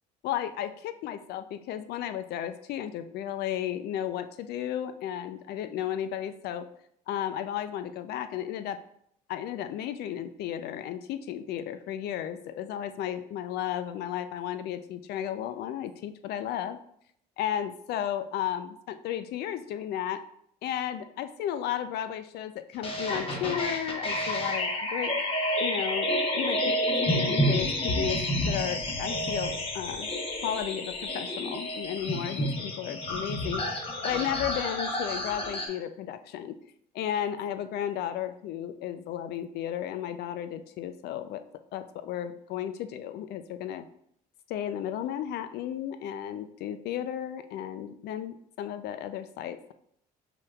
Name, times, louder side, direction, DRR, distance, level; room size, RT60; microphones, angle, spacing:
voice 1, 0.2-6.7 7.1-8.8 9.3-16.8 17.4-20.2 20.6-25.1 25.6-26.1 26.3-28.2 28.5-30.1 30.4-33.6 34.0-36.6 36.9-41.4 41.7-43.9 44.5-49.7, left 10 dB, 75° left, 10 dB, 0.4 m, -34 dB
sound 1, 22.8-35.7, left 1 dB, 35° left, 1.0 m, -29 dB
5.7 x 3.6 x 2.3 m, 0.69 s
cardioid pair, 110°, 17 cm